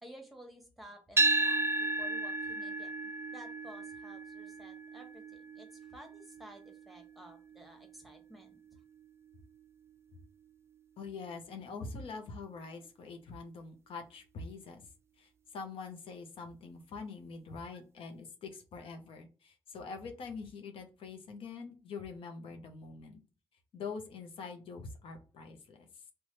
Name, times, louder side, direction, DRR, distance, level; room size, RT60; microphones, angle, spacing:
voice 1, 0.0-8.8, equal, ahead, 3 dB, 1.1 m, -54 dB
sound 1, 1.2-9.3, right 3 dB, 30° right, 0.3 m, -34 dB
voice 2, 11.0-14.9 15.2-23.2 23.7-26.0, left 4 dB, 85° left, 5 dB, 0.6 m, -44 dB
3.1 x 2.2 x 3.9 m, 0.34 s
cardioid pair, 70°, 9 cm